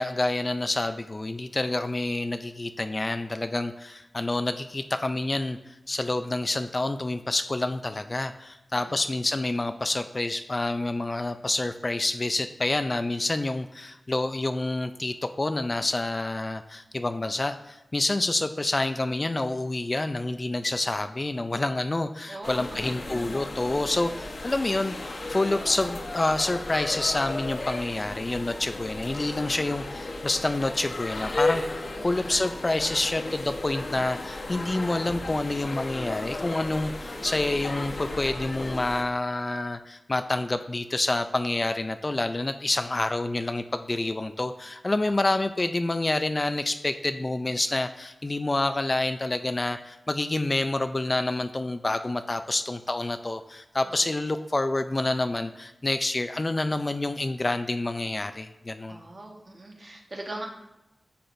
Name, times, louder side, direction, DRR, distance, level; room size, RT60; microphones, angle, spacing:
voice 1, 0.0-5.6 5.9-24.9 25.3-31.6 32.0-59.0, left 2 dB, 30° left, 9 dB, 0.4 m, -28 dB
voice 2, 8.7-9.0 22.3-22.6 23.9-24.0 31.9-32.3 45.0-45.1 53.8-54.1 58.9-60.5, right 2 dB, 45° right, 1 dB, 1.2 m, -41 dB
sound 1, 22.4-39.0, left 2 dB, 55° left, 0.9 m, -34 dB
10.0 x 6.8 x 2.6 m, 0.93 s
wide cardioid pair, 85°, 0 cm